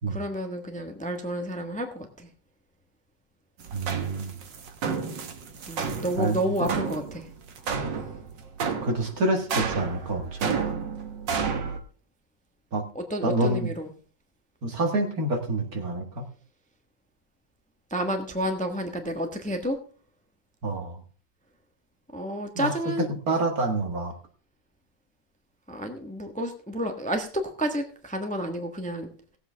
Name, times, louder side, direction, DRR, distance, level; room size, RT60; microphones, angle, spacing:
voice 1, 0.1-2.3 5.7-7.3 12.9-13.9 17.9-19.8 22.1-23.1 25.7-29.1, equal, 5° left, 5 dB, 1.1 m, -30 dB
sound 1, 3.6-11.8, right 6 dB, 80° right, 2.0 m, -31 dB
voice 2, 3.7-4.3 6.2-6.7 8.8-10.5 12.7-12.8 13.2-13.7 14.6-16.3 20.6-21.0 22.6-22.7 23.0-24.1, right 2 dB, 55° right, 4 dB, 2.3 m, -27 dB
17.5 x 8.0 x 3.5 m, 0.40 s
omnidirectional pair, 1.9 m